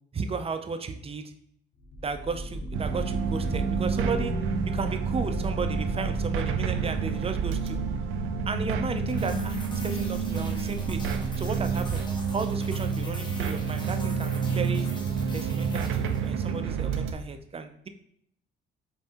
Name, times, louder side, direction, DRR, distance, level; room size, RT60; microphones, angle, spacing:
voice 1, 0.1-1.3 2.0-4.3 4.7-7.8 8.5-11.1 11.4-12.0 12.3-14.9 15.3-17.9, right 4 dB, 30° right, 8 dB, 0.4 m, -34 dB
sound 1, 1.8-12.4, left 1 dB, 55° left, 0.8 m, -35 dB
sound 2, 2.7-17.1, right 6 dB, 90° right, 0.4 m, -29 dB
sound 3, 9.1-16.6, left 1 dB, 25° left, 0.9 m, -43 dB
5.4 x 2.6 x 2.9 m, 0.68 s
cardioid pair, 90°, 20 cm